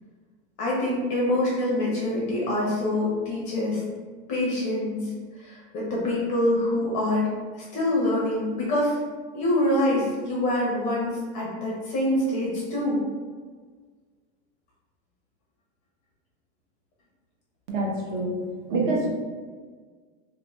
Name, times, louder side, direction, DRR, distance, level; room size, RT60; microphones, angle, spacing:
voice 1, 0.6-3.8 4.3-5.1 5.4-7.3 7.6-9.0 9.3-13.0, left 1 dB, 20° left, -4 dB, 0.5 m, -25 dB
voice 2, 17.7-18.4 18.7-19.1, right 2 dB, 45° right, -1 dB, 0.7 m, -26 dB
2.6 x 2.4 x 4.0 m, 1.5 s
supercardioid pair, 165°, 34 cm